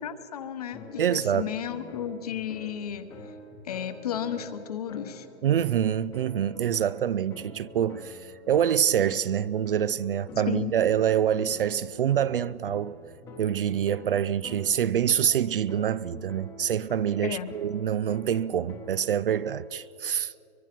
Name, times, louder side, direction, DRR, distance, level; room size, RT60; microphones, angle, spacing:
voice 1, 0.0-3.3 3.6-5.3 10.5-10.7 17.2-17.5, left 9 dB, 35° left, 1.0 m, -33 dB
sound 1, 0.7-19.8, left 1 dB, 10° left, 1.0 m, -46 dB
voice 2, 1.0-1.5 5.4-12.9 13.4-20.3, right 9 dB, 55° right, 0.4 m, -26 dB
24.0 x 22.0 x 6.0 m
hypercardioid pair, 180°, 34 cm